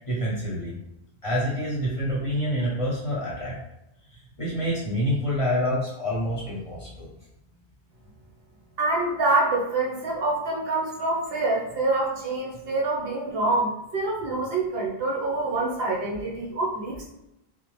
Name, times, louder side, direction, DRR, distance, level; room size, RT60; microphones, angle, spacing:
voice 1, 0.1-0.7 1.2-3.5 4.4-7.1, equal, 35° left, -7 dB, 0.8 m, -27 dB
voice 2, 8.8-17.1, right 2 dB, 65° right, -4 dB, 0.9 m, -26 dB
2.8 x 2.1 x 3.0 m, 0.86 s
omnidirectional pair, 1.1 m